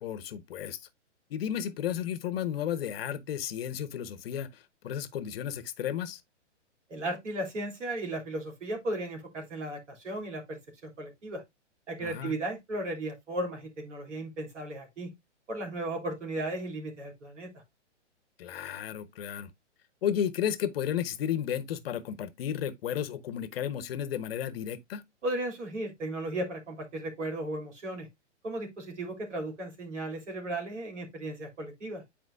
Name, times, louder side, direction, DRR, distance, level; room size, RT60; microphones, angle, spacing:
voice 1, 0.0-0.8 1.3-6.2 12.0-12.3 18.4-19.5 20.0-25.0, left 9 dB, 55° left, 1.0 m, -33 dB
voice 2, 6.9-11.4 11.9-15.1 15.5-17.5 25.2-28.1 28.4-32.0, right 1 dB, 75° right, 3.1 m, -35 dB
9.5 x 4.4 x 2.5 m
hypercardioid pair, 125°, 36 cm